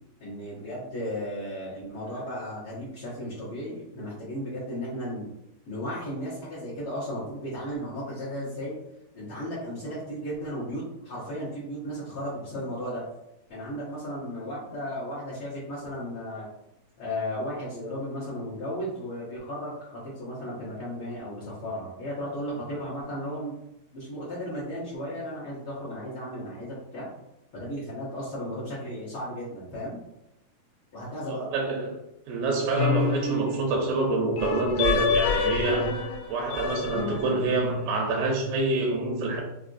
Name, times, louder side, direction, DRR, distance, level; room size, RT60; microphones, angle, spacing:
voice 1, 0.2-5.3 5.7-8.8 9.1-13.0 13.5-16.5 17.0-23.5 23.9-27.1 27.5-30.0 30.9-31.5, equal, 60° left, -11 dB, 1.4 m, -35 dB
voice 2, 31.3-32.0 32.3-35.9 36.3-39.4, right 3 dB, 80° right, 1 dB, 2.3 m, -27 dB
sound 1, 32.8-33.9 34.4-37.7, left 5 dB, 90° left, 1.6 m, -27 dB
5.8 x 2.6 x 2.6 m, 0.86 s
omnidirectional pair, 4.4 m